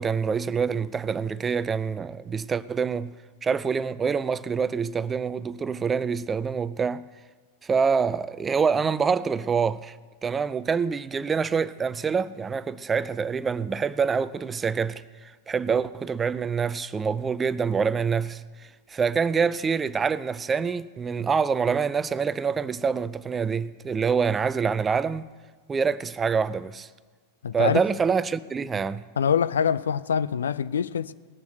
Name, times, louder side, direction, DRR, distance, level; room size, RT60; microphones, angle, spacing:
voice 1, 0.0-3.1 3.4-7.0 7.6-10.0 10.2-18.4 18.9-25.3 25.7-26.9 27.5-29.0, right 6 dB, 20° right, 0.4 m, -26 dB
voice 2, 27.4-27.8 29.2-31.1, left 7 dB, 65° left, 0.4 m, -24 dB
18.5 x 7.0 x 8.0 m
figure-of-eight pair, 90°, 0 cm